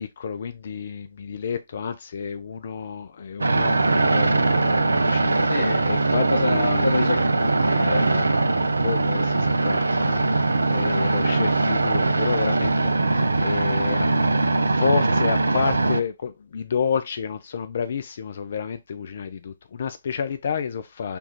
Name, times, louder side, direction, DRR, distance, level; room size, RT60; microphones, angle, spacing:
voice 1, 0.0-5.5 5.8-6.9 7.8-14.1 14.7-21.2, left 6 dB, 45° left, 0.3 m, -30 dB
sound 1, 3.4-16.0, right 3 dB, 70° right, 0.4 m, -21 dB
voice 2, 5.5-5.9 6.3-8.2, left 2 dB, 65° left, 1.3 m, -26 dB
5.2 x 2.3 x 2.8 m
figure-of-eight pair, 135°, 0 cm